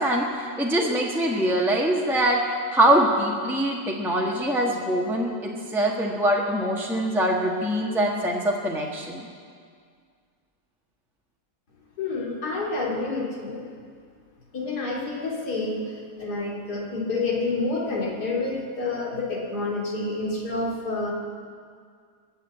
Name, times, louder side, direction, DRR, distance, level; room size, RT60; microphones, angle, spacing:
voice 1, 0.0-2.4 2.7-9.3, right 1 dB, ahead, -2 dB, 1.2 m, -23 dB
voice 2, 12.0-13.6 14.5-15.8 16.2-21.1, left 3 dB, 90° left, -3 dB, 3.0 m, -28 dB
21.5 x 7.1 x 8.2 m, 2.1 s
omnidirectional pair, 1.7 m